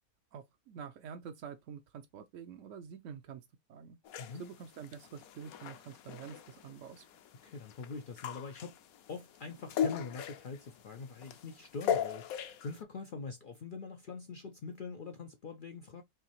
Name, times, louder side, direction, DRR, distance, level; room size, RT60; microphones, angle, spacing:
voice 1, 0.3-4.0 4.3-7.0, right 7 dB, 65° right, 0.8 m, -47 dB
sound 1, 4.1-12.8, left 8 dB, 70° left, 1.0 m, -39 dB
voice 2, 7.4-8.7 9.1-16.0, left 4 dB, 85° left, 0.4 m, -44 dB
4.8 x 3.1 x 2.9 m
omnidirectional pair, 1.7 m